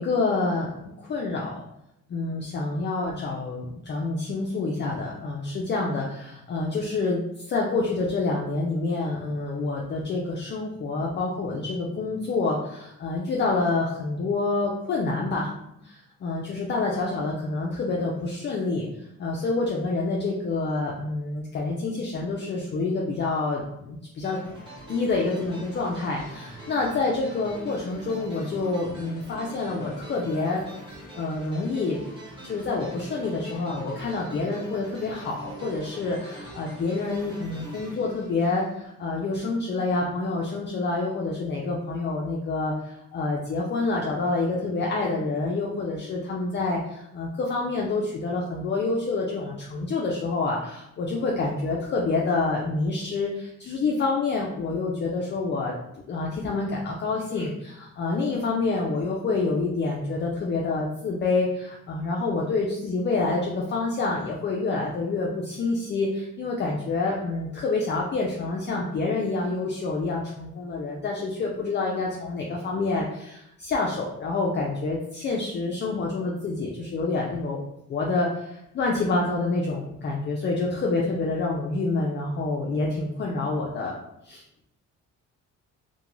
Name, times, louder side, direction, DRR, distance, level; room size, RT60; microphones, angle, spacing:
voice 1, 0.0-1.6 2.1-15.5 15.8-18.9 19.2-24.4 24.9-30.6 31.2-32.0 32.4-55.8 56.1-77.6 77.9-84.0 84.2-84.4, left 3 dB, 35° left, -2 dB, 0.4 m, -27 dB
sound 1, 24.2-39.1, right 1 dB, 15° right, 1.0 m, -43 dB
2.4 x 2.2 x 3.0 m, 0.81 s
cardioid pair, 90°, 30 cm